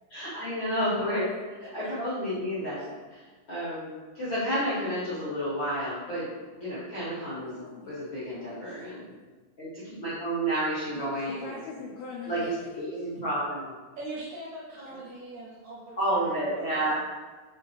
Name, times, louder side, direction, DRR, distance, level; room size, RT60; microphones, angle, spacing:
voice 1, 0.1-1.3 1.6-3.2 3.5-9.1 9.6-11.6 12.3-13.7 16.0-16.9, right 1 dB, 60° left, -12 dB, 1.3 m, -31 dB
voice 2, 7.4-8.8 10.9-13.1 14.8-15.0 16.6-16.9, left 4 dB, 85° left, -2 dB, 1.7 m, -43 dB
voice 3, 14.0-16.9, right 2 dB, 70° right, -6 dB, 2.0 m, -42 dB
5.0 x 3.6 x 2.8 m, 1.3 s
omnidirectional pair, 4.0 m